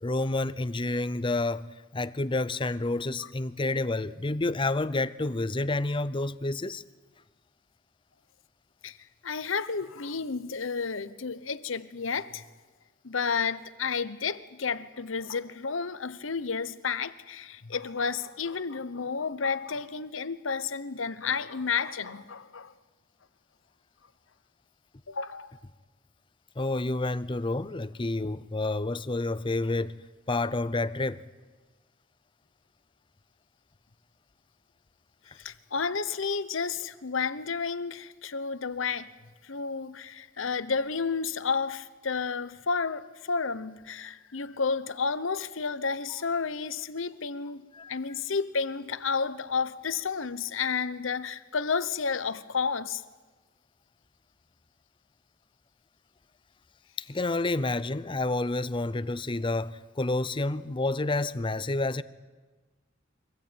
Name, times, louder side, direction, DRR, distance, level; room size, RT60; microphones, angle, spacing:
voice 1, 0.0-1.6 1.9-6.8 26.6-29.9 30.3-31.2 47.7-48.0 57.0-62.0, left 2 dB, 25° left, 0.6 m, -29 dB
voice 2, 9.2-12.4 13.0-22.7 25.1-25.5 35.3-39.1 39.4-53.0, left 5 dB, 75° left, 0.9 m, -31 dB
23.5 x 16.5 x 9.1 m
head